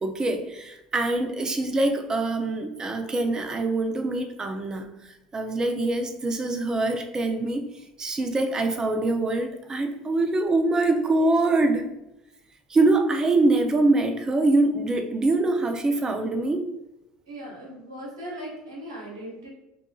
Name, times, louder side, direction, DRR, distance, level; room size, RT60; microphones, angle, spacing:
voice 1, 0.0-7.6 8.0-11.9 12.7-16.7, right 2 dB, 25° right, 6 dB, 0.6 m, -24 dB
voice 2, 17.3-19.5, right 1 dB, 85° right, -3 dB, 1.2 m, -38 dB
5.6 x 2.5 x 2.3 m, 0.89 s
hypercardioid pair, 75°, 3 cm